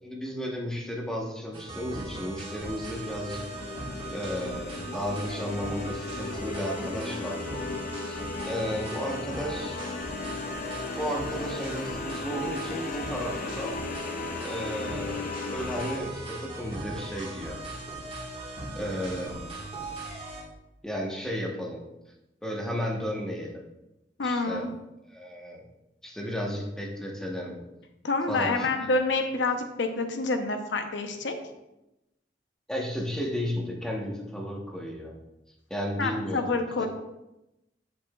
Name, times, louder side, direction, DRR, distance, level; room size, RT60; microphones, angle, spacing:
voice 1, 0.0-3.4 4.1-7.6 8.0-9.8 10.9-13.8 14.4-17.6 18.7-19.6 20.8-21.8 22.4-23.6 24.2-24.7 25.1-25.7 26.0-27.6 28.3-28.7 32.7-35.2 35.7-36.9, equal, 5° left, -1 dB, 1.0 m, -33 dB
sound 1, 1.5-20.4, right 2 dB, 30° right, 1.4 m, -38 dB
sound 2, 2.6-16.0, left 4 dB, 50° left, 0.4 m, -37 dB
voice 2, 24.2-24.7 28.0-31.4 36.0-36.9, left 3 dB, 75° left, 6 dB, 0.7 m, -27 dB
7.7 x 6.8 x 2.3 m, 0.94 s
head